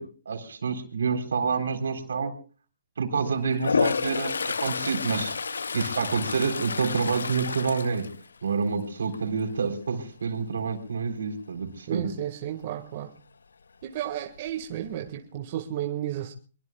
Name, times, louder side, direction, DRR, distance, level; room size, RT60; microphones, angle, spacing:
voice 1, 0.0-2.4 3.0-5.4 5.7-8.1 8.4-12.1, right 5 dB, 80° right, 7 dB, 3.9 m, -28 dB
Toilet flush, 3.5-8.7 9.1-9.5 14.0-14.1 14.4-15.1, left 5 dB, 90° left, 0.7 m, -30 dB
voice 2, 11.9-13.2 13.8-16.3, right 11 dB, 45° right, 5 dB, 1.7 m, -33 dB
24.0 x 22.5 x 2.4 m, 0.38 s
hypercardioid pair, 145°, 0 cm